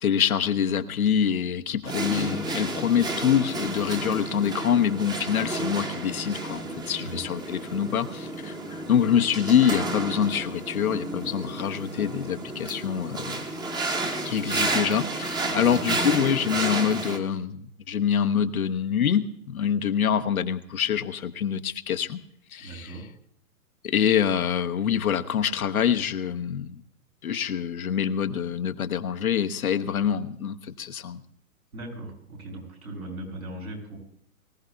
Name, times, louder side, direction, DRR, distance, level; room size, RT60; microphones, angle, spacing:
voice 1, 0.0-13.4 14.2-22.2 22.5-23.0 23.8-26.8 27.2-31.2, left 8 dB, 75° left, 8 dB, 1.1 m, -25 dB
sound 1, 1.9-17.2, right 2 dB, 10° right, 1.0 m, -31 dB
voice 2, 22.6-23.1 31.7-34.0, right 1 dB, 85° right, -2 dB, 6.8 m, -39 dB
23.5 x 15.5 x 2.3 m, 0.65 s
hypercardioid pair, 120°, 43 cm